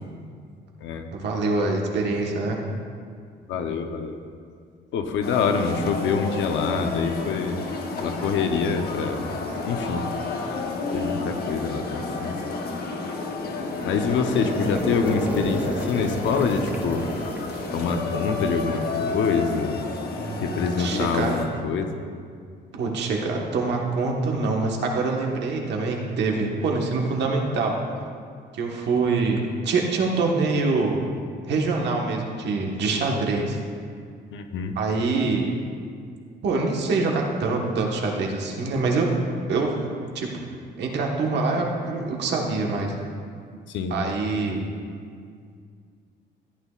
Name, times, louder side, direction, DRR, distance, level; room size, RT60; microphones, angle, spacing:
voice 1, 1.1-2.6 20.2-20.5 20.8-21.3 22.7-27.7 28.5-31.0 31.4-33.6 34.7-35.5 36.4-39.1 39.5-39.8 40.1-40.3 40.8-42.9 43.9-44.6, right 3 dB, 65° right, 0 dB, 1.4 m, -25 dB
voice 2, 3.5-4.2 4.9-7.6 8.0-9.3 9.7-10.1 10.9-12.4 13.9-17.1 17.7-19.8 20.4-22.0 34.3-34.8 43.7-44.1, left 5 dB, 90° left, 6 dB, 0.8 m, -26 dB
sound 1, 5.2-21.5, left 3 dB, 55° left, 1.0 m, -31 dB
sound 2, 13.2-19.1, right 1 dB, 10° right, 0.7 m, -33 dB
14.5 x 9.0 x 2.4 m, 2.2 s
cardioid pair, 170°, 19 cm